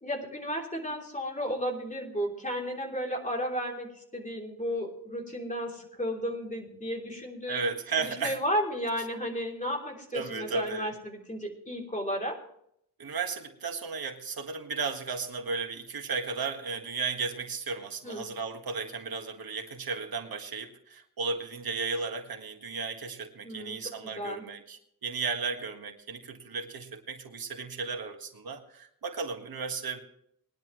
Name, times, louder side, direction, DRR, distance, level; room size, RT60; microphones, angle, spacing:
voice 1, 0.0-7.7 8.0-12.4 18.0-18.2 23.4-23.8 24.0-24.4, equal, 20° left, -1 dB, 3.3 m, -33 dB
voice 2, 7.5-8.4 10.1-10.9 13.0-30.0, right 4 dB, 80° right, 4 dB, 1.7 m, -34 dB
21.0 x 10.5 x 3.1 m, 0.70 s
wide cardioid pair, 145°, 36 cm